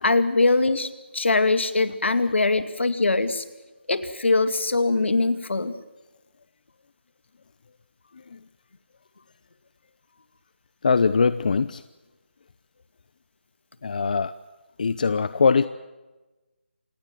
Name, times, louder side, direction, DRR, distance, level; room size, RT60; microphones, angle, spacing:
voice 1, 0.0-3.4 3.9-5.7, left 3 dB, 75° left, 11 dB, 2.3 m, -22 dB
voice 2, 10.8-11.8 13.8-14.3 14.8-15.7, left 5 dB, 45° left, 15 dB, 0.7 m, -21 dB
28.0 x 19.0 x 7.6 m, 1.1 s
figure-of-eight pair, 165°, 6 cm